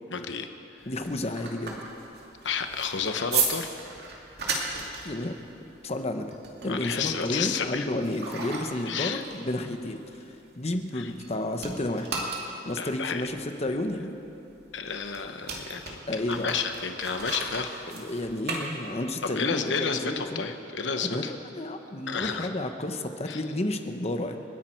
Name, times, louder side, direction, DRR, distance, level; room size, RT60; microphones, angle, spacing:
voice 1, 0.1-0.5 2.4-3.8 6.7-7.8 8.9-9.2 10.9-11.1 12.8-13.2 14.7-16.0 16.3-17.7 19.2-21.3 22.1-22.5 23.3-23.4, left 6 dB, 80° left, 7 dB, 1.0 m, -31 dB
sound 1, 0.8-11.3 11.6-19.3, right 4 dB, 60° right, 2.5 m, -36 dB
voice 2, 0.9-1.8 5.0-5.3 5.8-6.3 6.6-12.1 12.6-14.1 16.1-16.5 17.9-20.4 21.0-24.5, left 1 dB, 35° left, 6 dB, 0.9 m, -31 dB
30.0 x 10.5 x 4.5 m, 3.0 s
head